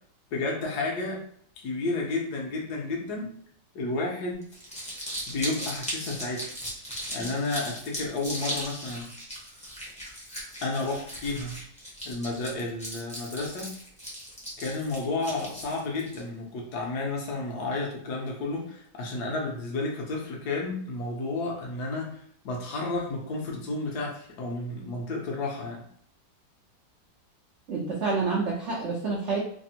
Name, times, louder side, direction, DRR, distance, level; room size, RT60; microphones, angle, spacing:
voice 1, 0.3-1.2 1.6-3.3 3.7-4.4 5.3-6.5 7.1-9.1 10.6-11.6 12.0-13.7 14.6-25.8, left 2 dB, 70° left, -1 dB, 1.2 m, -31 dB
Crumpling crinkling, 4.4-16.2, equal, 10° left, 0.4 m, -38 dB
voice 2, 27.7-29.4, right 4 dB, 75° right, -3 dB, 0.6 m, -28 dB
3.3 x 2.0 x 2.7 m, 0.63 s
omnidirectional pair, 1.9 m